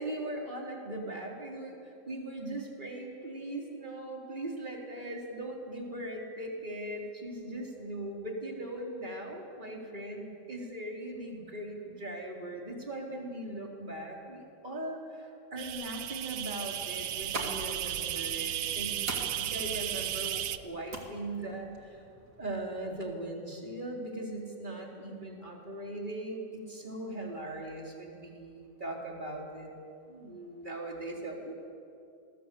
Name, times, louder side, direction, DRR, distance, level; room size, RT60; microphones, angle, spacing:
voice 1, 0.0-22.0 22.4-29.7 30.1-31.5, right 1 dB, 25° right, 0 dB, 3.9 m, -39 dB
sound 1, 15.6-20.6, right 11 dB, 80° right, 1.5 m, -34 dB
sound 2, 17.0-23.0, right 2 dB, 60° right, 3.4 m, -44 dB
27.0 x 20.5 x 8.4 m, 2.5 s
omnidirectional pair, 2.0 m